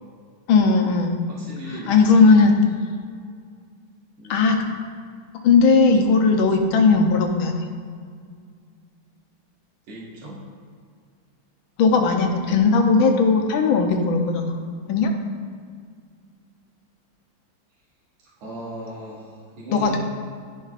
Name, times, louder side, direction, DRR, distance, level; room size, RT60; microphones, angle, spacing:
voice 1, 0.5-1.2 1.9-2.6 4.3-4.6 5.4-7.5 11.8-14.6 14.9-15.1 19.7-20.0, left 4 dB, 75° left, 4 dB, 1.5 m, -17 dB
voice 2, 1.3-2.0 4.2-4.4 9.9-10.4 18.4-20.0, right 1 dB, 80° right, -7 dB, 2.3 m, -37 dB
14.0 x 5.5 x 2.4 m, 2.1 s
omnidirectional pair, 2.3 m